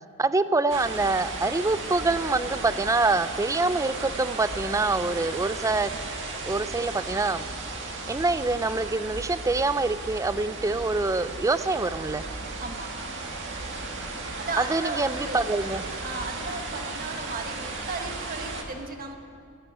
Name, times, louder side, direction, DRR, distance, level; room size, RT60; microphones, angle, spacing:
voice 1, 0.2-5.9 6.4-7.5 8.1-12.2 14.6-15.8, right 3 dB, 15° right, 14 dB, 0.4 m, -25 dB
sound 1, 0.7-18.6, right 3 dB, 55° right, 1.8 m, -35 dB
voice 2, 12.6-13.1 14.2-15.5 16.0-19.1, right 3 dB, 40° right, 4 dB, 1.4 m, -36 dB
14.5 x 10.0 x 8.7 m, 2.4 s
head